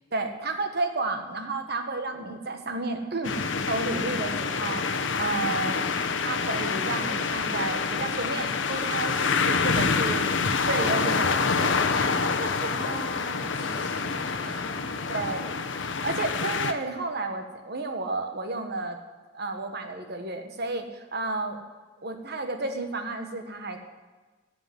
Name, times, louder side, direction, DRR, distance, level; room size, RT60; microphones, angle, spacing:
voice 1, 0.1-4.8 5.1-5.8 6.2-10.3 10.6-11.7 12.0-12.7 14.4-14.6 15.1-15.4 16.0-19.0 19.3-21.6 22.0-23.8, right 2 dB, 55° right, 6 dB, 1.5 m, -32 dB
sound 1, 3.2-16.7, left 5 dB, 70° left, 0.9 m, -27 dB
voice 2, 12.5-15.8, right 1 dB, 25° right, -11 dB, 5.5 m, -42 dB
15.0 x 7.0 x 9.5 m, 1.3 s
head